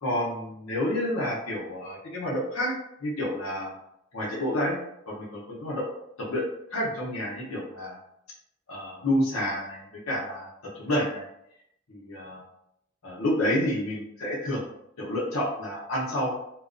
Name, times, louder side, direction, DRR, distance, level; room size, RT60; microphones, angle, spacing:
voice 1, 0.0-2.7 3.0-3.7 4.1-4.8 5.1-5.9 6.2-8.0 8.7-10.5 10.7-11.3 11.9-12.4 13.0-14.6 15.0-16.4, left 1 dB, 80° left, -5 dB, 0.7 m, -29 dB
2.2 x 2.2 x 2.4 m, 0.78 s
head